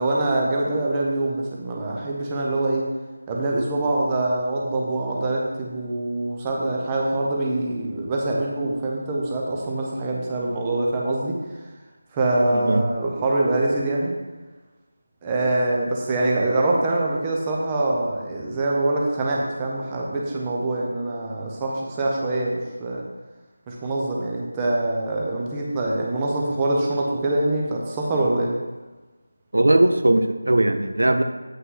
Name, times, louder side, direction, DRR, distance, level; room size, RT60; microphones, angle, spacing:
voice 1, 0.0-2.9 3.3-11.4 12.1-14.1 15.2-23.0 23.7-28.5, right 2 dB, 15° right, -2 dB, 1.0 m, -24 dB
voice 2, 12.5-12.8 29.5-31.2, right 1 dB, 75° right, 8 dB, 0.6 m, -19 dB
8.0 x 5.5 x 3.9 m, 1.2 s
figure-of-eight pair, 165°, 0 cm